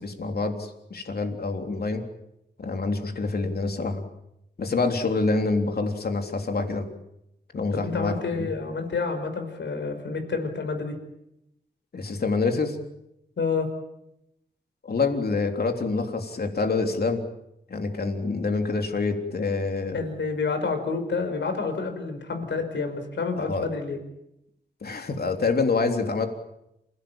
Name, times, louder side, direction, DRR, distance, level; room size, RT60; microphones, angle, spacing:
voice 1, 0.0-2.1 2.6-4.0 4.6-6.9 7.5-8.5 11.9-12.8 14.8-17.3 17.7-20.0 23.4-23.7 24.8-26.3, left 3 dB, 55° left, 5 dB, 3.4 m, -26 dB
voice 2, 7.8-11.0 13.4-13.7 19.9-24.0, left 4 dB, 75° left, 6 dB, 5.5 m, -29 dB
28.0 x 17.0 x 9.0 m, 0.84 s
wide cardioid pair, 90°, 19 cm